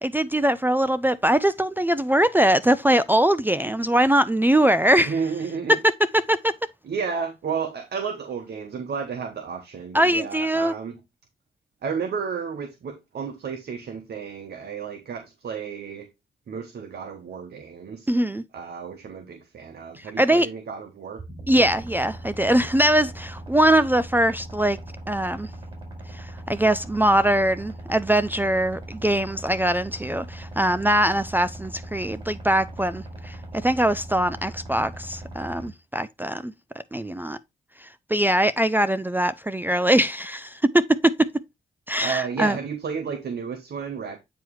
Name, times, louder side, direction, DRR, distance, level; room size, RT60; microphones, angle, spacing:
voice 1, 0.0-5.1 5.7-5.8 6.3-6.5 9.9-10.7 18.1-18.4 20.2-20.5 21.5-24.8 25.1-25.5 26.2-33.4 33.6-36.5 36.9-37.4 38.1-41.3 41.9-42.6, right 1 dB, 10° right, 0.4 m, -22 dB
voice 2, 5.1-5.8 6.8-11.0 11.8-16.1 16.5-18.1 18.5-21.2 42.0-44.2, right 6 dB, 70° right, 1.1 m, -32 dB
sound 1, 21.2-35.7, right 1 dB, 30° right, 4.4 m, -39 dB
9.1 x 3.1 x 4.7 m
cardioid pair, 65°, 18 cm